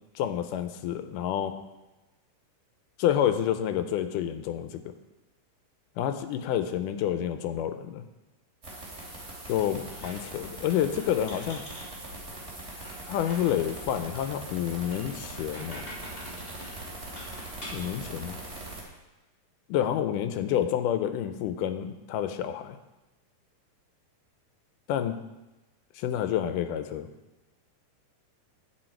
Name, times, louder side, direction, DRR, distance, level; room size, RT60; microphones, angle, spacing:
voice 1, 0.2-1.5 3.0-4.9 6.0-8.0 9.5-11.6 13.1-15.8 17.7-18.4 19.7-22.8 24.9-25.3 26.0-27.1, left 10 dB, 90° left, 9 dB, 2.2 m, -29 dB
sound 1, 8.6-18.8, right 2 dB, 20° right, 2.7 m, -41 dB
Squeak, 9.8-18.0, left 1 dB, 30° left, 3.5 m, -47 dB
10.5 x 9.0 x 4.5 m, 1.0 s
omnidirectional pair, 3.7 m